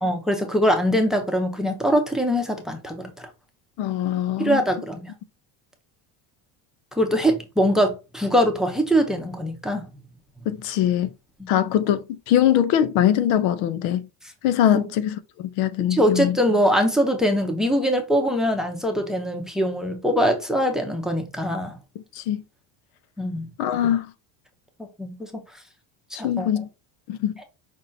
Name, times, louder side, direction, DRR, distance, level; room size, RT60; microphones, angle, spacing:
voice 1, 0.0-3.3 4.4-5.1 7.0-9.9 11.4-11.5 14.7-14.8 15.9-21.7 23.2-23.5 25.0-25.4 26.1-26.5, equal, ahead, 0.7 m, -22 dB
voice 2, 3.8-4.6 10.5-11.1 11.5-14.1 14.4-16.4 22.1-22.4 23.6-24.1 26.2-26.7 27.1-27.3, left 10 dB, 85° left, 0.8 m, -22 dB
5.5 x 3.6 x 2.7 m
cardioid pair, 150°, 46 cm